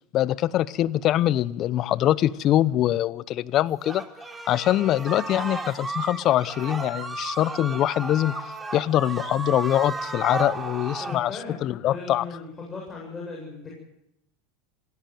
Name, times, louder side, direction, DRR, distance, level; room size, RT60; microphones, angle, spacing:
voice 1, 0.1-4.0 4.5-8.3 8.7-12.2, left 13 dB, 45° left, 20 dB, 0.8 m, -23 dB
sound 1, 3.8-11.2, right 3 dB, 15° right, 3.3 m, -34 dB
voice 2, 11.0-11.6 11.9-13.7, left 4 dB, 20° left, -2 dB, 7.7 m, -37 dB
18.5 x 17.0 x 9.3 m, 0.83 s
hypercardioid pair, 100°, 0 cm